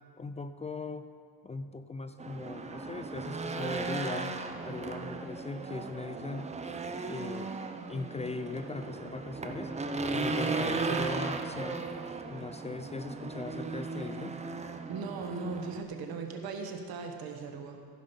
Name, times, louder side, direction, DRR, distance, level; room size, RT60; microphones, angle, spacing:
voice 1, 0.2-1.1 1.4-4.3 4.6-6.5 7.0-7.5 7.9-9.7 10.1-11.9 12.3-14.4, left 3 dB, 20° left, 9 dB, 0.3 m, -39 dB
Race car auto racing / Engine, 2.2-15.8, right 3 dB, 20° right, 0.6 m, -36 dB
voice 2, 14.9-17.8, right 4 dB, 80° right, 4 dB, 1.3 m, -38 dB
15.5 x 5.3 x 5.5 m, 2.1 s
cardioid pair, 105°, 36 cm